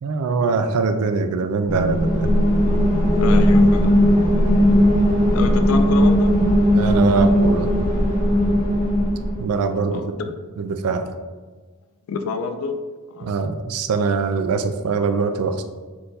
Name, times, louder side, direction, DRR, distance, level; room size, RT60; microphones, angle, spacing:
voice 1, 0.0-2.4 6.7-7.7 9.4-10.2 10.6-11.1 13.2-15.6, right 4 dB, 80° right, 8 dB, 0.4 m, -22 dB
sound 1, 1.7-9.5, equal, 35° left, 1.2 m, -17 dB
voice 2, 3.2-3.9 5.3-6.3 9.9-10.1 12.1-12.8 13.1-13.3, left 4 dB, 65° left, 7 dB, 0.3 m, -27 dB
4.4 x 2.6 x 3.9 m, 1.4 s
head